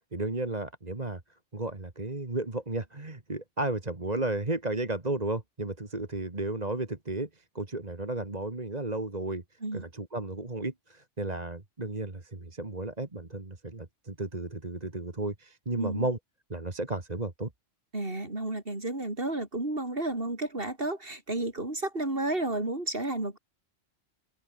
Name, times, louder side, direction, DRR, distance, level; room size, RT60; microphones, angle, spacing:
voice 1, 0.1-1.2 1.5-9.4 9.7-16.2 16.5-17.5, right 2 dB, 35° right, 2.5 m, -33 dB
voice 2, 15.8-16.1 17.9-23.4, right 2 dB, 50° right, 4.7 m, -32 dB
open air
omnidirectional pair, 1.2 m